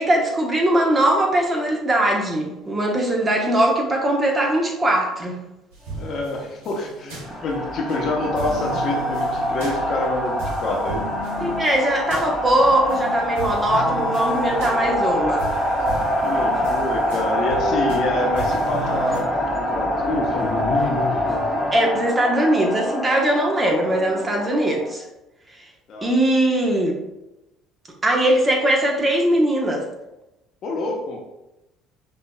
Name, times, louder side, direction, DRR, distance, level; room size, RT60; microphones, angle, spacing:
voice 1, 0.0-5.4 11.4-15.5 21.7-25.1 26.0-27.0 28.0-29.8, right 1 dB, 25° right, 0 dB, 1.1 m, -20 dB
sound 1, 5.7-8.0 8.4-13.0 13.4-19.2, right 3 dB, 80° right, 1.1 m, -34 dB
voice 2, 6.0-11.1 13.7-13.8 16.2-21.5 25.9-26.1 30.6-31.2, left 2 dB, 55° left, 0 dB, 0.9 m, -27 dB
sound 2, 7.2-24.9, left 1 dB, 15° left, 1.2 m, -25 dB
5.5 x 3.0 x 2.3 m, 0.94 s
hypercardioid pair, 60°, 0 cm